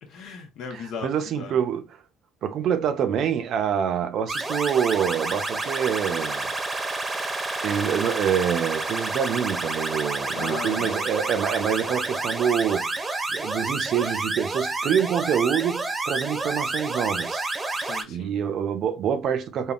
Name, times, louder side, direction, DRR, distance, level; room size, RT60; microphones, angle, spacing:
voice 1, 0.0-1.6 10.3-11.0 17.8-18.3, left 5 dB, 70° left, 0.9 m, -37 dB
voice 2, 0.7-1.8 2.4-6.5 7.6-17.5 18.1-19.7, right 8 dB, 60° right, 0.5 m, -26 dB
sound 1, 4.3-18.0, right 2 dB, 25° right, 0.7 m, -29 dB
3.6 x 2.2 x 2.4 m
supercardioid pair, 80°, 0 cm